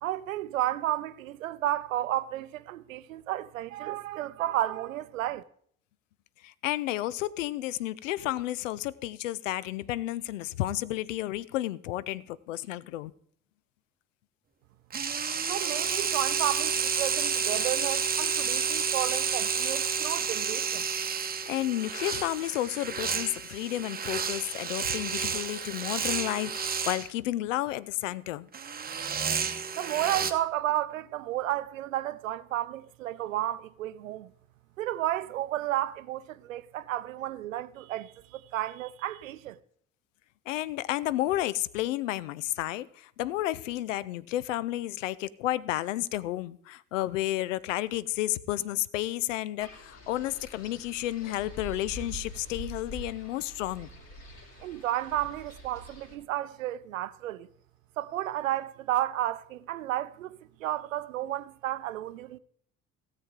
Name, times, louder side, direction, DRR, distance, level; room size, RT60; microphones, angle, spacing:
voice 1, 0.0-5.4 15.5-20.9 29.7-34.3 34.8-39.6 54.6-57.5 58.0-62.4, right 14 dB, 75° right, 0.6 m, -32 dB
voice 2, 6.4-13.1 21.5-28.5 40.5-53.9, left 15 dB, 70° left, 0.5 m, -31 dB
sound 1, 14.9-27.1 28.5-30.3, right 6 dB, 25° right, 1.0 m, -30 dB
Wind, 49.6-56.2, right 1 dB, 45° left, 2.8 m, -45 dB
16.5 x 7.5 x 3.7 m
figure-of-eight pair, 50°, 40 cm